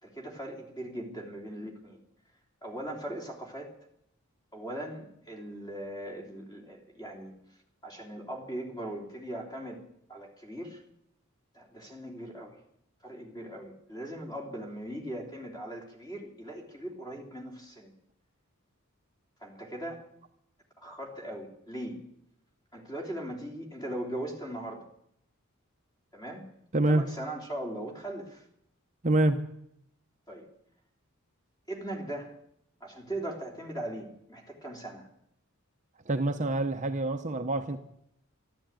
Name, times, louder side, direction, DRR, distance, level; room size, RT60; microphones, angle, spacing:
voice 1, 0.0-2.0 2.6-3.7 4.5-9.8 10.1-10.8 11.5-12.6 13.0-17.9 19.4-20.0 20.8-22.0 22.7-24.9 26.1-28.5 30.3-30.5 31.7-32.3 32.8-35.1, right 1 dB, 20° left, 3.2 m, -39 dB
voice 2, 26.7-27.0 29.0-29.4 36.1-37.8, right 2 dB, 35° right, 0.8 m, -26 dB
13.0 x 12.5 x 8.9 m
head